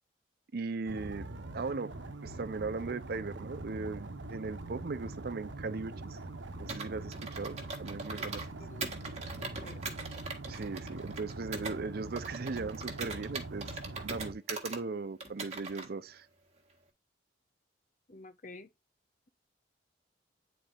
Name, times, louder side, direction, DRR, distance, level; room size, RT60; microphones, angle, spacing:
voice 1, 0.5-2.0 2.2-6.2 6.6-8.4 10.5-16.3, right 4 dB, 55° right, 0.5 m, -38 dB
sound 1, 0.9-14.3, right 2 dB, 85° right, 1.0 m, -43 dB
Computer keyboard, 6.7-8.5 8.8-11.8 12.2-14.8 15.2-15.9, right 4 dB, 35° right, 1.6 m, -41 dB
voice 2, 8.6-9.8 18.1-18.7, left 2 dB, 45° left, 0.9 m, -51 dB
9.7 x 4.3 x 2.5 m
head